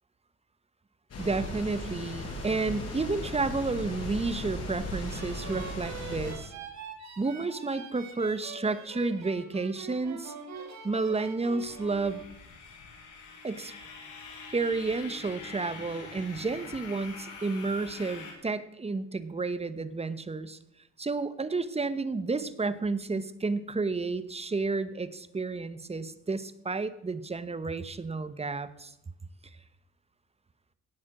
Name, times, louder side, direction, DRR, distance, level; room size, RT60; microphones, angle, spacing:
sound 1, 1.1-6.3, left 1 dB, 55° left, 6.3 m, -37 dB
voice 1, 1.2-6.5 7.2-10.3 10.8-12.2 13.4-13.7 14.5-20.6 21.0-28.9, right 3 dB, 20° right, 14 dB, 1.0 m, -31 dB
sound 2, 5.0-12.2, right 5 dB, 60° right, 2.6 m, -44 dB
sound 3, 11.6-18.3, left 4 dB, 80° left, 3.8 m, -45 dB
18.0 x 7.2 x 6.2 m, 0.86 s
cardioid pair, 90°, 30 cm